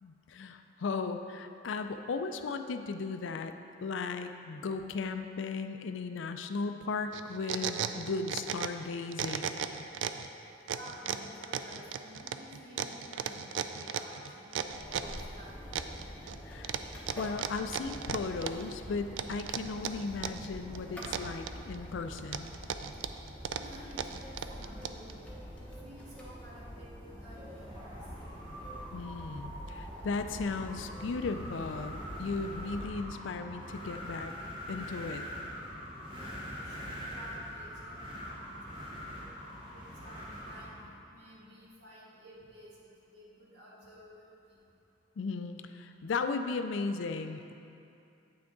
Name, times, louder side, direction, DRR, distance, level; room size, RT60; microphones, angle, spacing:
voice 1, 0.0-3.5 3.8-9.6 16.4-16.7 17.2-22.5 28.9-34.3 34.7-35.2 45.2-47.5, left 4 dB, 75° left, 8 dB, 0.4 m, -36 dB
sound 1, 7.1-8.8 9.1-10.3 10.7-15.2 15.7-16.4 16.6-18.7 19.2-20.5 20.7-21.8 22.2-25.1, right 8 dB, 75° right, 0.3 m, -35 dB
voice 2, 10.7-15.6 23.6-28.0 36.1-39.3 39.7-44.6, equal, 60° right, -7 dB, 1.9 m, -53 dB
sound 2, 14.6-32.9, equal, 5° left, 1.0 m, -46 dB
Wind, 27.3-40.9, equal, 25° right, 1.3 m, -44 dB
8.5 x 5.9 x 3.8 m, 2.6 s
head